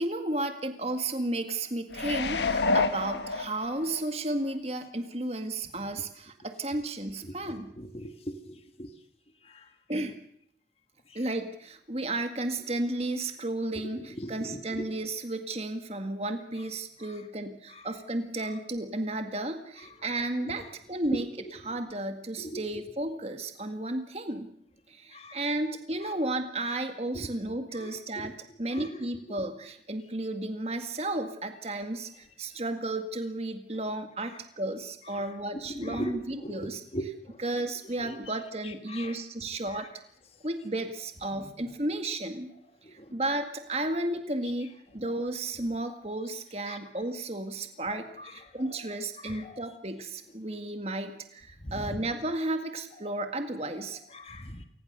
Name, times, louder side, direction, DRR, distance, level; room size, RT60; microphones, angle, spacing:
voice 1, 0.0-7.7 9.9-10.2 11.1-24.5 24.9-36.8 37.4-39.9 40.4-42.5 42.9-54.0, right 2 dB, 35° right, 7 dB, 1.9 m, -33 dB
sound 1, 1.9-4.0 4.5-4.6, left 3 dB, 80° left, 1.6 m, -28 dB
voice 2, 7.8-8.9 14.2-14.9 22.4-22.6 25.1-25.4 27.1-27.3 27.8-27.9 28.2-28.3 28.7-28.9 35.8-37.1 38.0-38.1 38.9-39.1 46.7-46.8 49.3-49.5 51.6-51.8 54.1-54.6, equal, 35° left, 6 dB, 1.7 m, -38 dB
28.0 x 20.0 x 6.7 m, 0.67 s
head